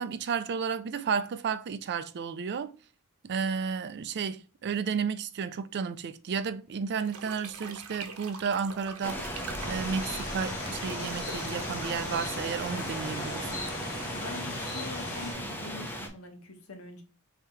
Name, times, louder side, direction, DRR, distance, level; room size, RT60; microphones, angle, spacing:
voice 1, 0.0-2.7 3.2-13.5, right 6 dB, 50° right, 0.4 m, -32 dB
sound 1, 6.9-14.9, right 5 dB, 80° right, 0.8 m, -46 dB
sound 2, 9.0-16.1, equal, 10° left, 0.8 m, -37 dB
sound 3, 9.6-15.3, left 2 dB, 40° left, 1.8 m, -39 dB
voice 2, 14.1-17.0, left 3 dB, 70° left, 1.1 m, -43 dB
5.6 x 2.8 x 3.2 m
head